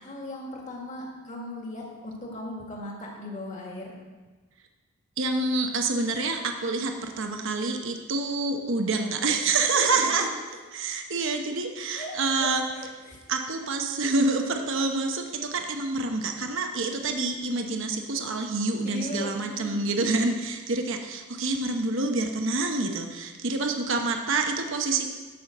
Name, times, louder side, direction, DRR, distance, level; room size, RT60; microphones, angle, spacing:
voice 1, 0.0-4.0 9.7-10.6 12.0-13.3 18.8-20.3, left 1 dB, 35° left, -2 dB, 2.0 m, -38 dB
voice 2, 5.2-10.3 10.7-12.6 13.3-15.2 15.5-25.1, right 3 dB, 55° right, 4 dB, 1.0 m, -27 dB
11.0 x 5.8 x 6.7 m, 1.3 s
head